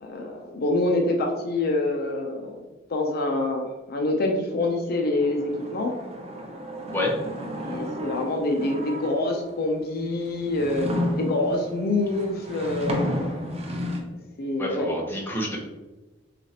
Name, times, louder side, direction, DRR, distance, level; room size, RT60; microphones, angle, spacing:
voice 1, 0.0-2.6 2.9-5.9 7.6-10.9 11.2-13.0 14.4-14.9, left 2 dB, 50° left, 2 dB, 0.5 m, -26 dB
sound 1, 5.2-9.5 10.1-14.0, left 1 dB, 30° right, 0.6 m, -32 dB
voice 2, 14.6-15.6, left 1 dB, 10° left, -3 dB, 0.8 m, -28 dB
6.2 x 2.4 x 2.8 m, 1.1 s
head